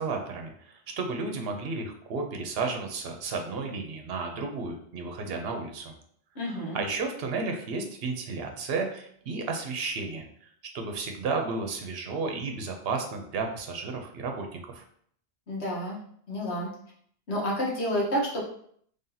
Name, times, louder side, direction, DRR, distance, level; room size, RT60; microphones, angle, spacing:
voice 1, 0.0-5.9 6.5-10.2 10.7-14.8, right 4 dB, 65° right, 4 dB, 0.9 m, -33 dB
voice 2, 6.3-6.8 15.5-16.0 16.3-16.7 17.3-18.4, equal, 80° left, -4 dB, 1.6 m, -29 dB
3.4 x 2.8 x 3.9 m, 0.63 s
omnidirectional pair, 1.1 m